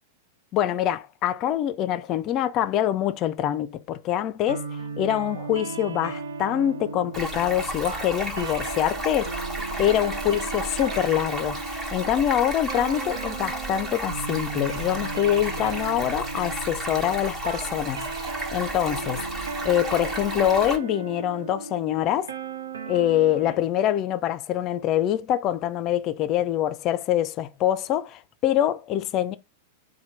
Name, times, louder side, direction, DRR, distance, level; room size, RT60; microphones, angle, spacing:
voice 1, 0.5-4.6 5.0-9.3 9.8-18.1 18.5-19.2 19.6-22.3 22.9-29.4, left 11 dB, 40° left, 0.4 m, -25 dB
sound 1, 4.5-23.6, right 4 dB, 80° right, 0.5 m, -36 dB
Stream, 7.1-20.8, right 1 dB, 25° right, 1.3 m, -33 dB
4.3 x 2.2 x 4.4 m
hypercardioid pair, 100°, 0 cm